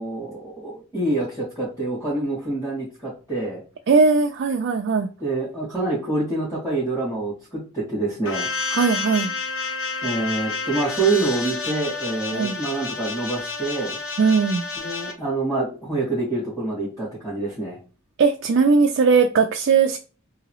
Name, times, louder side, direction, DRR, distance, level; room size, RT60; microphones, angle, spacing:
voice 1, 0.0-3.6 5.2-8.5 10.0-14.0 14.8-17.8, right 2 dB, 20° left, 2.1 m, -26 dB
voice 2, 3.9-5.1 8.7-9.3 12.3-12.6 14.2-14.7 18.2-20.0, right 5 dB, 55° right, 0.3 m, -19 dB
sound 1, 8.3-15.1, left 4 dB, 65° left, 0.6 m, -30 dB
3.9 x 2.7 x 3.0 m
head